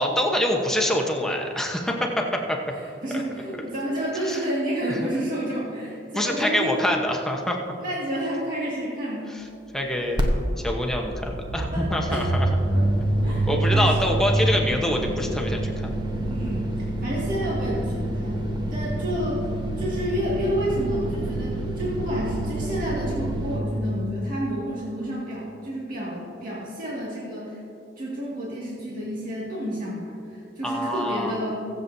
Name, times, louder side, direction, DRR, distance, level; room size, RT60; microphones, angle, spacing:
voice 1, 0.0-2.6 4.2-4.4 4.9-5.1 6.1-7.6 9.7-10.2 10.6-12.5 13.5-15.9 30.6-31.4, equal, 5° left, 0 dB, 1.0 m, -25 dB
voice 2, 2.7-6.7 7.8-9.3 11.7-12.4 12.7-12.8 13.2-14.1 16.3-16.7 17.0-18.4 18.7-19.4 19.8-27.6 28.0-31.5, equal, 50° right, -7 dB, 2.2 m, -30 dB
sound 1, 10.2-10.3 10.5-23.6, right 1 dB, 25° right, 1.0 m, -27 dB
22.5 x 7.6 x 2.7 m, 2.8 s
head